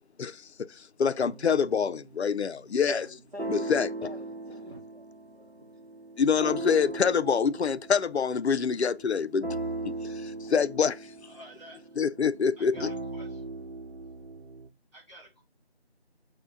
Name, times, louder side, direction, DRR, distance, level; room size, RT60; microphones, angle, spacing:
voice 1, 0.7-3.0 3.5-3.9 6.2-9.5 9.8-11.0 12.0-12.9, left 6 dB, 80° left, 0.5 m, -26 dB
sound 1, 1.2-14.7, right 2 dB, 75° right, 0.8 m, -39 dB
voice 2, 2.8-5.8, left 1 dB, 40° right, 0.9 m, -43 dB
voice 3, 11.2-12.0 12.6-13.4 14.9-15.4, right 1 dB, 25° left, 1.6 m, -51 dB
4.3 x 2.2 x 4.5 m
figure-of-eight pair, 175°, 32 cm